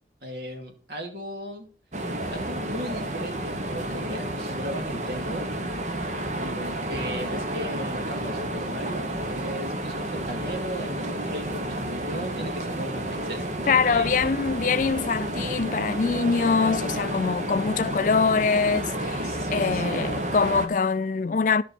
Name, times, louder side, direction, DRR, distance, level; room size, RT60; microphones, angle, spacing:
voice 1, 0.2-1.7 2.3-5.5 6.4-13.5 13.8-14.1 19.2-20.3, right 1 dB, 65° right, 2.4 m, -36 dB
sound 1, 1.9-20.7, right 1 dB, 40° right, 1.2 m, -31 dB
voice 2, 13.7-21.6, left 5 dB, 45° left, 0.4 m, -24 dB
11.0 x 7.1 x 4.3 m
head